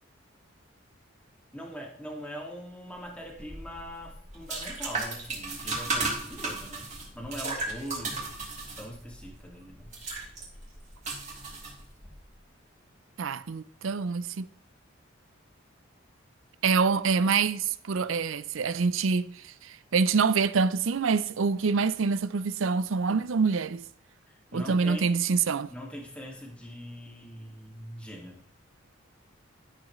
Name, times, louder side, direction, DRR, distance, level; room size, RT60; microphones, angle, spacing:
voice 1, 1.5-6.9 7.1-8.4 8.8-9.9 24.3-25.2 25.7-28.4, equal, 5° left, 2.1 m, -42 dB
sound 1, 3.3-12.2, right 3 dB, 35° right, 3.1 m, -35 dB
voice 2, 13.2-14.5 16.6-23.8 24.5-25.7, right 5 dB, 75° right, 0.5 m, -26 dB
13.0 x 7.2 x 3.2 m
head